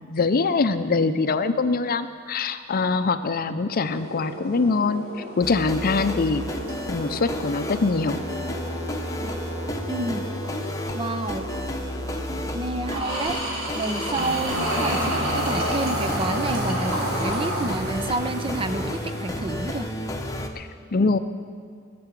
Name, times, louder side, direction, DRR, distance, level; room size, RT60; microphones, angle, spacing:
voice 1, 0.0-5.0 5.4-6.4 6.9-8.2 20.6-21.2, left 4 dB, 45° left, 11 dB, 0.5 m, -23 dB
sound 1, 3.8-17.7, equal, 90° right, 3.4 m, -32 dB
sound 2, 5.4-20.5, left 1 dB, 15° left, 0.9 m, -32 dB
voice 2, 9.8-10.3 10.9-11.5 12.5-13.4 13.7-19.9, right 2 dB, 25° right, 10 dB, 0.5 m, -29 dB
sound 3, 14.2-19.7, right 1 dB, 50° right, 1.2 m, -32 dB
17.5 x 6.9 x 7.4 m, 2.1 s
head